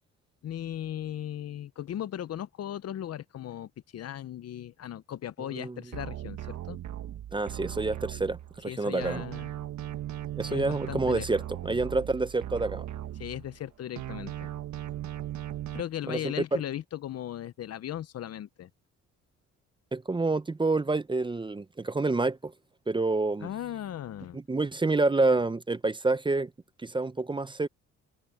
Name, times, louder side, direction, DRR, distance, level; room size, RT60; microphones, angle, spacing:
voice 1, 0.4-6.8 8.7-9.5 10.5-11.3 13.2-14.5 15.7-18.7 23.4-24.4, left 11 dB, 55° left, 0.7 m, -37 dB
sound 1, 5.9-8.7 9.0-13.7 14.0-15.8, right 12 dB, 70° right, 1.4 m, -38 dB
voice 2, 7.3-9.2 10.4-12.8 16.1-16.3 19.9-22.5 22.9-23.5 24.3-26.5 26.8-27.7, right 3 dB, 15° right, 0.6 m, -28 dB
cardioid pair, 90°, 30 cm